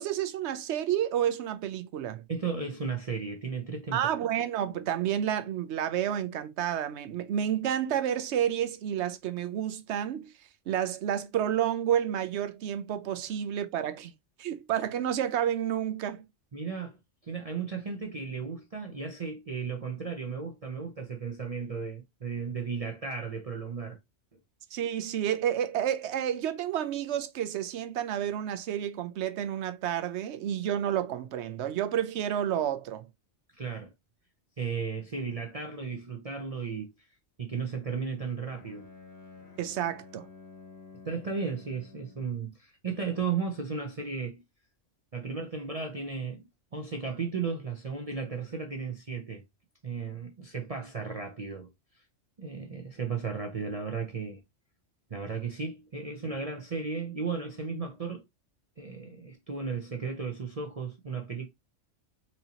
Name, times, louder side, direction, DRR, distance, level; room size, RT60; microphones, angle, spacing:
voice 1, 0.0-2.2 3.9-10.3 10.7-14.1 14.4-16.2 24.7-33.1 39.6-40.3, right 10 dB, 70° right, 0.8 m, -30 dB
voice 2, 2.3-4.1 16.5-17.0 17.2-24.0 33.5-33.9 34.6-36.9 37.4-38.9 41.0-44.4 45.1-49.4 49.8-51.7 52.4-54.4 55.1-58.2 58.8-61.5, right 5 dB, 40° right, 0.6 m, -35 dB
Bowed string instrument, 38.4-42.4, left 4 dB, 55° left, 1.1 m, -51 dB
4.3 x 2.7 x 2.8 m
omnidirectional pair, 1.3 m